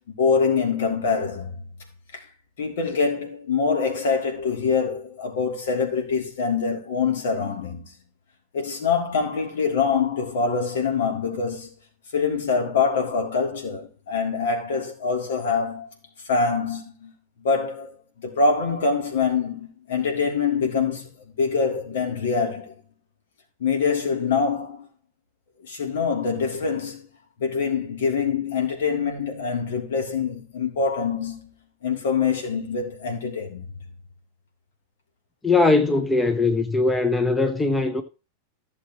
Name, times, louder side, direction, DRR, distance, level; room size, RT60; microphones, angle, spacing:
voice 1, 0.2-1.6 2.1-2.3 2.6-7.9 8.5-11.7 12.1-15.9 16.3-17.1 17.4-21.1 21.4-22.7 23.6-24.9 25.6-27.0 27.4-31.5 31.8-33.6, left 5 dB, 60° left, 3.3 m, -24 dB
voice 2, 35.4-38.0, left 3 dB, 10° left, 1.0 m, -20 dB
15.0 x 7.1 x 3.1 m
figure-of-eight pair, 90°, 0 cm